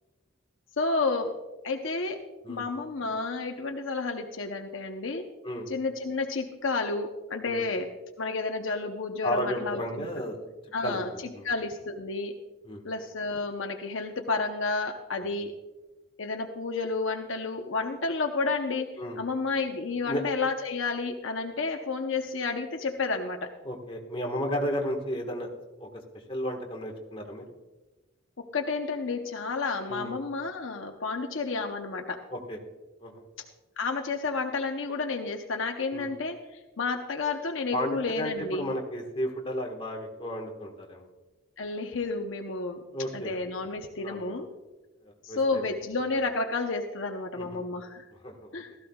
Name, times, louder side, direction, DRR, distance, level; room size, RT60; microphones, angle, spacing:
voice 1, 0.8-1.3 1.6-2.2 2.5-5.2 5.7-7.9 8.2-10.1 10.7-12.3 12.8-15.5 16.2-23.5 28.4-32.2 33.8-38.7 41.6-42.8 43.1-44.5 45.2-48.1 48.5-48.8, left 3 dB, 65° left, 4 dB, 0.8 m, -31 dB
voice 2, 9.2-10.4 10.8-11.4 12.6-12.8 19.0-19.2 20.1-20.2 23.6-25.5 25.8-25.9 26.3-27.4 29.9-30.1 32.3-32.6 33.0-33.2 35.9-36.1 37.7-41.1 42.9-43.4 44.0-44.3 45.0-45.6 47.4-47.6 48.2-48.5, equal, 25° left, 1 dB, 1.5 m, -33 dB
16.0 x 14.0 x 2.4 m, 1.1 s
head